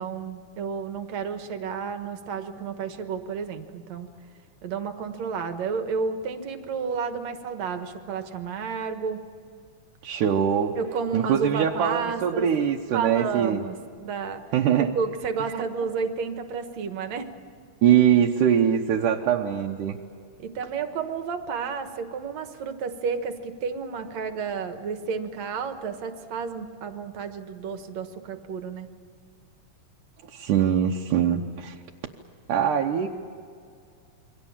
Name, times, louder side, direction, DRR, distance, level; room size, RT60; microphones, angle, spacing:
voice 1, 0.0-4.1 4.6-9.3 10.8-12.5 12.9-14.4 14.9-17.3 20.4-28.9, right 5 dB, 60° right, 7 dB, 2.5 m, -31 dB
voice 2, 10.0-10.7 11.1-13.7 14.5-14.9 15.5-15.6 17.8-20.0 30.3-31.8 32.5-33.1, right 9 dB, 80° right, 0 dB, 2.5 m, -22 dB
28.0 x 23.5 x 7.3 m, 2.3 s
omnidirectional pair, 3.7 m